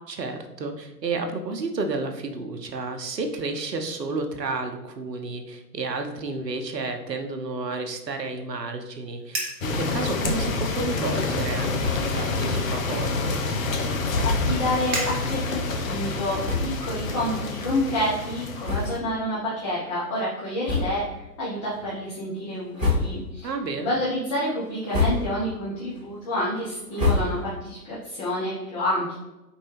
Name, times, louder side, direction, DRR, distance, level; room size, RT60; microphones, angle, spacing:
voice 1, 0.1-13.4 23.4-23.9, right 3 dB, 80° right, 5 dB, 0.8 m, -31 dB
Fire, 9.2-9.6 10.2-11.0 11.4-11.7 12.4-15.7, right 2 dB, 30° right, 1.0 m, -35 dB
sound 1, 9.6-19.0, left 3 dB, 55° left, 0.7 m, -28 dB
sound 2, 11.7-12.2 12.6-12.7 13.0-13.1 14.1-14.5 15.3-15.4 16.1-16.2 16.4-17.0 17.5-17.6 18.6-19.3 19.6-19.8 20.6-21.2 21.6-22.1 22.6-23.4 23.8-24.3 24.7-25.5 25.9-27.7, left 3 dB, 10° right, 0.4 m, -28 dB
voice 2, 14.2-23.5 23.8-29.2, left 1 dB, 20° left, -7 dB, 0.7 m, -28 dB
4.5 x 3.0 x 3.1 m, 1.0 s
figure-of-eight pair, 115°, 49 cm